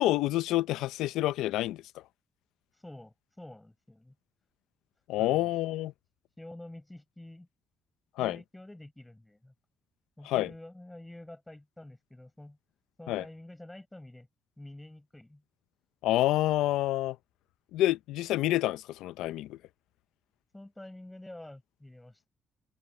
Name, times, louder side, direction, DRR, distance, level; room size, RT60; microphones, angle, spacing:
voice 1, 0.0-1.8 5.1-5.9 8.2-8.4 10.2-10.5 13.1-13.2 16.0-17.2 17.7-19.6, left 15 dB, 90° left, 0.7 m, -28 dB
voice 2, 2.7-4.1 5.2-5.5 6.4-7.5 8.2-9.5 10.2-12.6 13.0-14.3 14.6-15.4 20.5-22.3, left 1 dB, 10° left, 7.1 m, -48 dB
cardioid pair, 90°, 0 cm